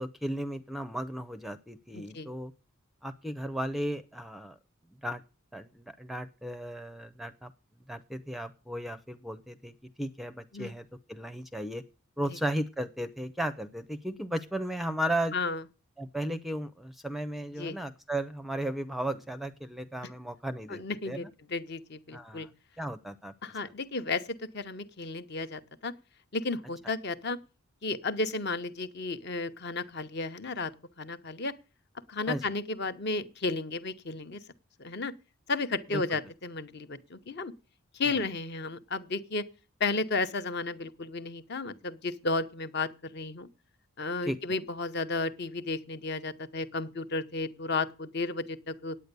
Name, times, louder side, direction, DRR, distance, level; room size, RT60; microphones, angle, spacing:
voice 1, 0.0-2.5 3.0-4.6 5.0-5.2 5.5-7.5 7.9-11.8 12.2-15.4 16.0-21.3 22.1-22.5 22.8-23.3 32.3-32.5 35.9-36.2 38.1-38.2 44.3-44.4, right 1 dB, ahead, 12 dB, 0.5 m, -35 dB
voice 2, 1.9-2.3 10.5-10.7 15.3-15.6 17.6-17.8 20.7-22.5 23.4-24.2 24.5-25.9 26.3-27.4 27.8-30.7 31.0-31.5 32.1-34.4 34.8-35.1 35.5-37.5 37.9-39.4 39.8-43.5 44.0-49.0, left 3 dB, 50° left, 11 dB, 0.8 m, -33 dB
9.3 x 8.8 x 6.7 m, 0.33 s
head